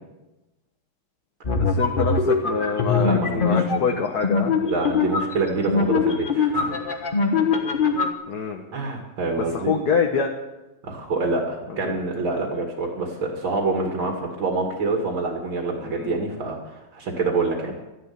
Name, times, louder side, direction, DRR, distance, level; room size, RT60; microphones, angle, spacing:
sound 1, 1.4-8.1, left 4 dB, 30° left, 1.3 m, -22 dB
voice 1, 1.5-4.5 8.3-8.6 9.4-10.3 11.8-12.0 15.8-16.2, left 6 dB, 55° left, 2 dB, 1.7 m, -25 dB
voice 2, 2.9-3.8 4.5-6.8 8.7-9.7 10.8-17.8, right 3 dB, 75° right, 1 dB, 3.1 m, -26 dB
14.0 x 11.5 x 8.7 m, 1.0 s
omnidirectional pair, 2.2 m